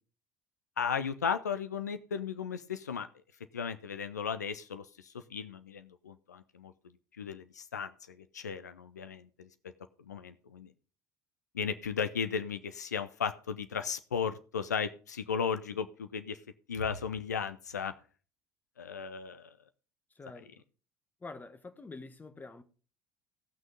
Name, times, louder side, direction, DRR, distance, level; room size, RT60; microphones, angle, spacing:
voice 1, 0.8-3.1 3.5-6.7 7.2-9.5 10.0-10.7 11.5-16.4 16.7-17.9 18.8-19.6 20.3-20.5, left 6 dB, 80° left, 0.7 m, -35 dB
voice 2, 20.2-20.5 21.2-22.6, left 3 dB, 20° left, 1.7 m, -46 dB
17.0 x 6.3 x 5.3 m
figure-of-eight pair, 60°, 9 cm